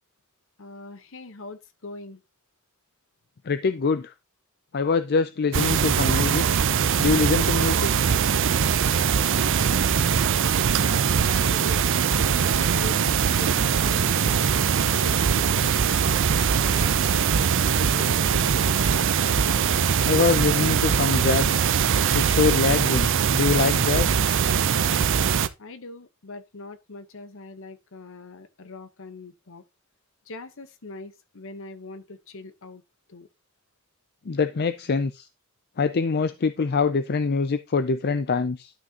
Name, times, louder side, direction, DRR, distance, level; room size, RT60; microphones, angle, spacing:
voice 1, 0.6-2.2 10.8-11.9 12.1-16.0 16.5-17.4 17.7-18.8 25.6-29.6 30.3-32.8 33.1-33.3, left 3 dB, 65° left, 1.0 m, -41 dB
voice 2, 3.5-4.1 4.7-6.4 7.0-8.1 20.1-21.6 22.1-24.3 34.3-35.3 35.8-38.7, left 4 dB, 50° left, 0.5 m, -24 dB
sound 1, 5.5-25.5, right 7 dB, 60° right, 0.6 m, -22 dB
11.5 x 6.1 x 2.9 m
head